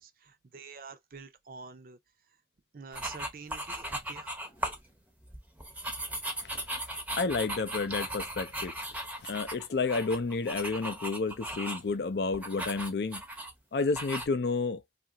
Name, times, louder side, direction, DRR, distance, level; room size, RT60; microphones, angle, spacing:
voice 1, 0.0-2.0 2.7-4.4, right 5 dB, 50° right, 0.5 m, -47 dB
sound 1, 2.9-4.8 5.2-11.9 12.3-13.5 13.9-14.3, right 1 dB, 10° right, 0.6 m, -37 dB
voice 2, 7.2-8.7 9.2-13.2 13.7-14.8, left 4 dB, 65° left, 0.5 m, -31 dB
2.8 x 2.5 x 2.8 m
head